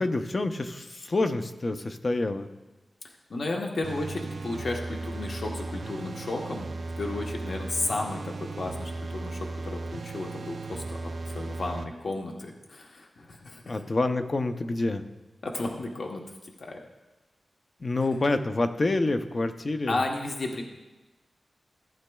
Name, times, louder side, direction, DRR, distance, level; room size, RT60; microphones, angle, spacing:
voice 1, 0.0-2.5 13.7-15.0 17.8-20.0, left 2 dB, 40° left, 8 dB, 0.6 m, -27 dB
voice 2, 3.3-6.7 7.0-13.8 15.4-16.8 19.9-20.6, left 2 dB, 65° left, 1 dB, 1.0 m, -33 dB
sound 1, 3.8-11.8, right 3 dB, 60° right, 0.5 m, -36 dB
15.0 x 8.9 x 2.3 m, 1.1 s
wide cardioid pair, 105°, 0 cm